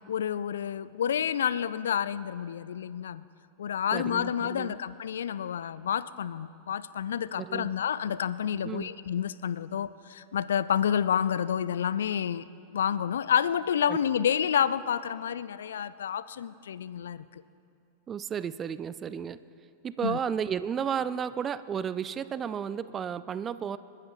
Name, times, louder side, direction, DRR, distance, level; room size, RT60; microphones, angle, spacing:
voice 1, 0.1-3.2 3.6-12.5 12.7-17.4 20.0-20.2, left 8 dB, 65° left, 17 dB, 0.3 m, -29 dB
voice 2, 3.9-4.8 7.4-7.8 8.6-8.9 13.9-14.0 18.1-19.4 19.8-23.8, right 8 dB, 25° right, 15 dB, 0.4 m, -33 dB
29.5 x 12.5 x 2.5 m, 2.5 s
figure-of-eight pair, 90°, 0 cm